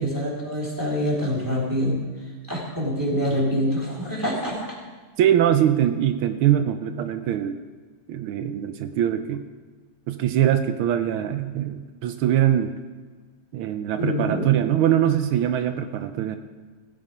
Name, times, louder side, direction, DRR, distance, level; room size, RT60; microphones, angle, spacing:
voice 1, 0.0-2.0 2.5-4.6 14.0-14.5, equal, 10° right, -5 dB, 3.5 m, -25 dB
voice 2, 5.2-7.6 8.1-9.4 10.1-12.7 13.5-16.4, right 11 dB, 80° right, 9 dB, 1.5 m, -22 dB
16.5 x 7.8 x 5.2 m, 1.5 s
omnidirectional pair, 2.4 m